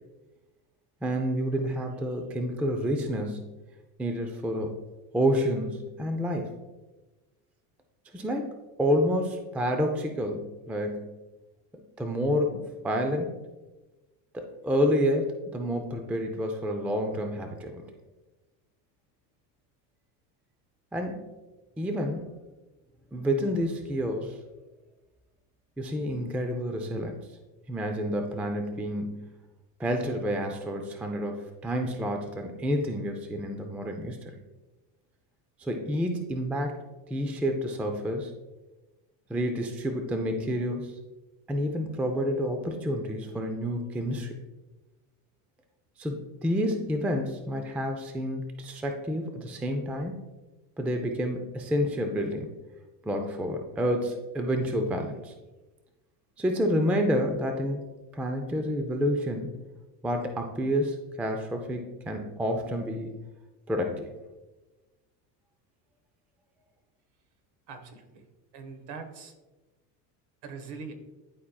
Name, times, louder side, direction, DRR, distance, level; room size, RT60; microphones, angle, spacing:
voice 1, 1.0-3.5 4.0-4.8 5.1-6.5 8.1-11.1 12.0-13.3 14.3-17.8 20.9-21.3 21.8-22.3 23.1-24.4 25.8-27.2 27.7-29.3 29.8-34.3 35.6-36.8 37.1-38.3 39.3-41.0 41.5-44.3 46.0-50.2 50.8-52.5 53.0-55.3 56.4-57.8 58.1-59.6 60.0-63.1 63.7-64.1, equal, 5° right, 4 dB, 0.3 m, -29 dB
voice 2, 67.7-68.3 68.5-69.3 70.4-70.9, right 5 dB, 55° right, 7 dB, 1.2 m, -42 dB
11.0 x 4.1 x 2.2 m, 1.1 s
supercardioid pair, 110°, 47 cm